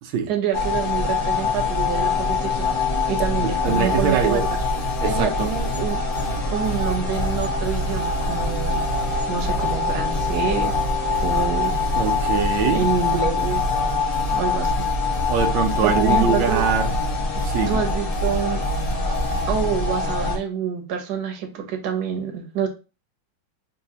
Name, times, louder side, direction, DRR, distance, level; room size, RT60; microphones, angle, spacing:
voice 1, 0.3-2.7 3.1-4.4 5.0-6.0 6.5-8.8 9.3-10.8 11.2-11.7 12.7-13.7 14.3-14.9 15.8-16.6 17.7-18.6 19.5-22.7, right 7 dB, 60° right, 1.2 m, -26 dB
sound 1, 0.5-20.4, left 4 dB, 30° left, 0.6 m, -24 dB
sound 2, 1.8-13.5, left 3 dB, 60° left, 1.4 m, -41 dB
voice 2, 3.4-4.4 5.0-5.5 12.0-12.8 15.3-16.9 17.4-17.8, right 7 dB, 90° right, 1.4 m, -23 dB
sound 3, 3.6-19.5, right 5 dB, 10° left, 1.3 m, -32 dB
4.0 x 2.6 x 2.7 m
omnidirectional pair, 2.1 m